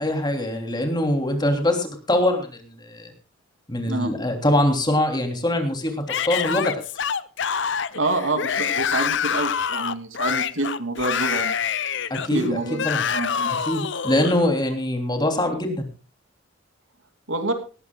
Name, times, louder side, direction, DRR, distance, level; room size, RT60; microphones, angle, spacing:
voice 1, 0.0-3.1 3.7-6.8 12.1-13.0 13.5-15.9, left 1 dB, 20° left, 5 dB, 3.1 m, -23 dB
Yell / Screaming, 6.1-14.4, left 7 dB, 65° left, 0.8 m, -26 dB
voice 2, 7.9-11.5 12.3-12.8 13.1-13.5 17.3-17.5, right 2 dB, 75° right, 7 dB, 2.8 m, -27 dB
19.0 x 16.5 x 2.3 m, 0.34 s
head